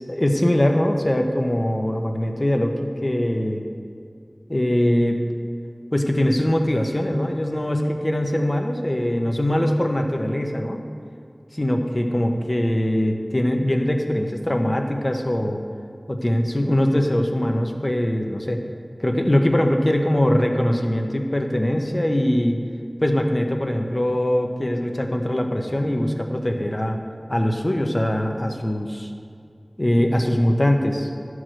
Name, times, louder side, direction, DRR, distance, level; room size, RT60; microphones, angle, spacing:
voice 1, 0.0-3.6 4.5-5.2 5.9-10.8 11.5-15.6 16.1-18.6 19.0-22.6 23.0-27.0 27.3-29.1 29.8-31.1, left 1 dB, 45° left, 3 dB, 1.0 m, -22 dB
12.0 x 4.8 x 7.6 m, 2.2 s
wide cardioid pair, 40°, 0 cm